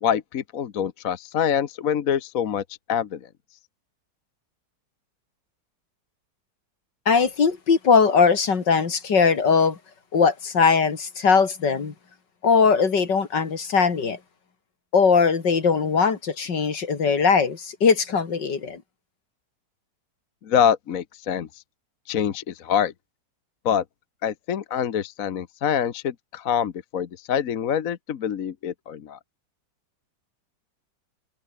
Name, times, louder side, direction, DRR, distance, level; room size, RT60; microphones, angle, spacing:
voice 1, 0.0-3.2 20.4-21.5 22.1-22.9 23.6-23.8 24.2-29.2, left 8 dB, 55° left, 1.4 m, -25 dB
voice 2, 7.1-9.8 10.1-11.9 12.4-14.2 14.9-18.8, left 5 dB, 75° left, 3.1 m, -20 dB
omnidirectional pair, 1.9 m